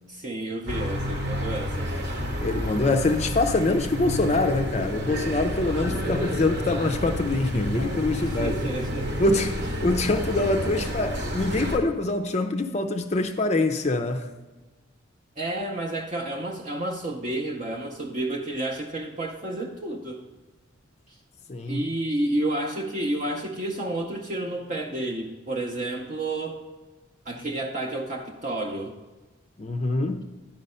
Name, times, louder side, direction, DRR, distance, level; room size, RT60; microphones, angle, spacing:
voice 1, 0.1-1.9 8.2-9.2 15.4-20.2 21.1-21.2 21.7-26.6 27.3-28.9, right 1 dB, 35° right, 1 dB, 0.6 m, -30 dB
sound 1, 0.7-11.8, equal, 50° right, 1.0 m, -30 dB
voice 2, 2.4-8.5 9.2-14.3 21.5-21.8 29.6-30.2, left 2 dB, 30° left, 7 dB, 0.4 m, -24 dB
10.5 x 5.3 x 5.5 m, 1.2 s
head